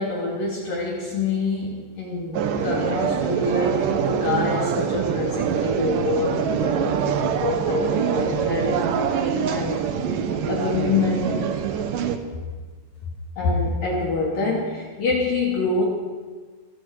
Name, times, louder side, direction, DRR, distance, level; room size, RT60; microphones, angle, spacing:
voice 1, 0.0-8.8 9.2-9.8 10.5-11.4 13.4-15.8, left 3 dB, 55° left, -3 dB, 4.6 m, -26 dB
sound 1, 2.3-12.2, right 7 dB, 65° right, 2.5 m, -24 dB
29.5 x 22.0 x 4.9 m, 1.4 s
omnidirectional pair, 5.1 m